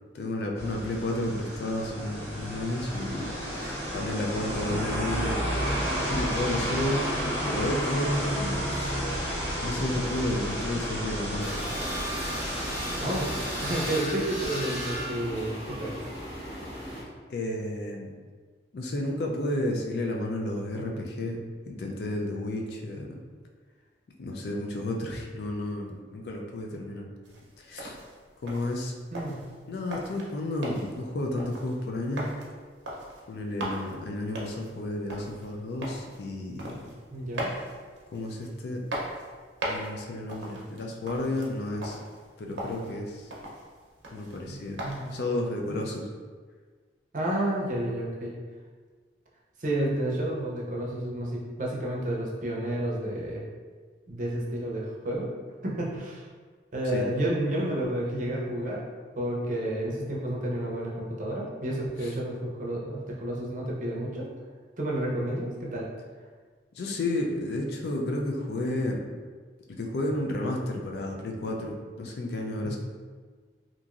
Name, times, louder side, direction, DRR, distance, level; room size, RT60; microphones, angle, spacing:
voice 1, 0.1-3.3 3.6-5.6 6.1-7.1 7.5-9.0 9.6-11.5 17.3-18.1 18.7-21.4 21.7-23.2 24.2-27.1 27.6-28.0 28.4-28.9 29.7-32.3 33.3-36.8 38.1-38.8 39.7-42.0 42.4-43.3 44.1-44.8 45.1-46.1 56.9-57.1 62.0-62.1 66.8-69.0 69.8-72.8, left 1 dB, 65° left, 1 dB, 0.4 m, -32 dB
sound 1, 0.6-14.0, equal, 15° left, 0.9 m, -31 dB
sound 2, 11.4-17.0, equal, 35° left, 1.0 m, -35 dB
voice 2, 13.0-16.0 29.1-29.3 37.1-37.5 44.5-45.1 45.7-45.9 47.1-48.3 49.6-53.4 54.1-55.3 55.6-56.2 56.7-58.8 59.2-64.3 64.8-65.8 72.6-72.8, right 1 dB, 45° right, -3 dB, 0.5 m, -30 dB
sound 3, 27.2-45.3, right 1 dB, 85° right, 0.6 m, -40 dB
2.9 x 2.5 x 2.4 m, 1.5 s
head